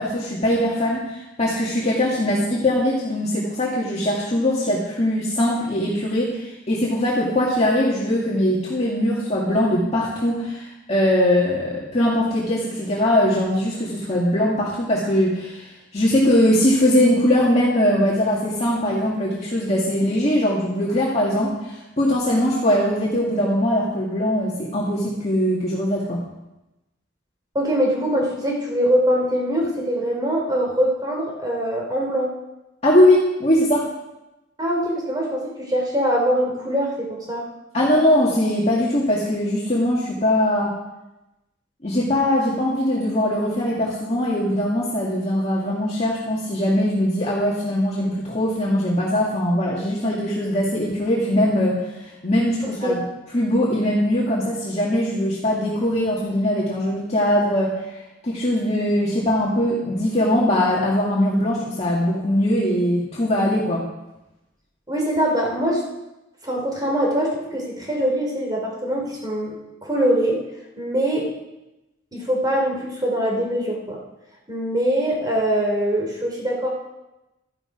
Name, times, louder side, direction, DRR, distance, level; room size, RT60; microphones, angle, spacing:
voice 1, 0.0-26.2 32.8-33.8 37.7-40.7 41.8-53.0 53.3-57.7 58.2-63.9, left 1 dB, 35° left, -5 dB, 2.0 m, -21 dB
voice 2, 27.5-32.3 34.6-37.4 52.6-53.0 64.9-65.8 66.4-69.5 69.8-70.4 70.8-71.3 72.1-74.0 74.5-76.7, equal, 20° right, -1 dB, 3.2 m, -23 dB
13.0 x 10.5 x 5.0 m, 0.97 s
head